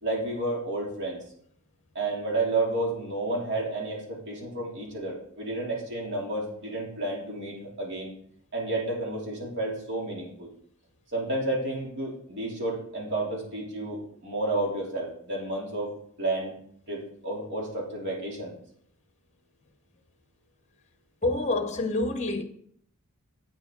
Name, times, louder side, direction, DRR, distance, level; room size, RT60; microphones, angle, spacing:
voice 1, 0.0-1.2 1.9-8.1 8.5-10.5 11.1-15.9 16.2-16.5 16.9-18.5, right 2 dB, 50° right, 3.0 m, -31 dB
voice 2, 21.2-22.4, left 2 dB, 30° left, 0.8 m, -27 dB
8.4 x 7.6 x 3.9 m
head